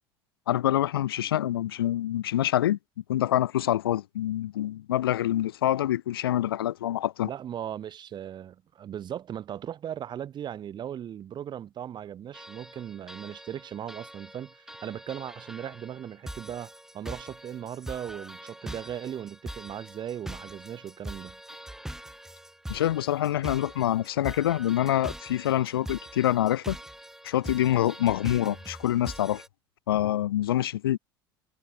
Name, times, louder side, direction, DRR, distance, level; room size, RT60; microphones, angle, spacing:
voice 1, 0.5-2.8 3.1-7.3 22.7-26.8 27.2-29.4 29.9-31.0, left 12 dB, 70° left, 0.5 m, -26 dB
voice 2, 7.2-21.4, right 10 dB, 35° right, 2.7 m, -38 dB
sound 1, 12.3-29.5, right 1 dB, 5° right, 2.9 m, -43 dB
figure-of-eight pair, 70°, 13 cm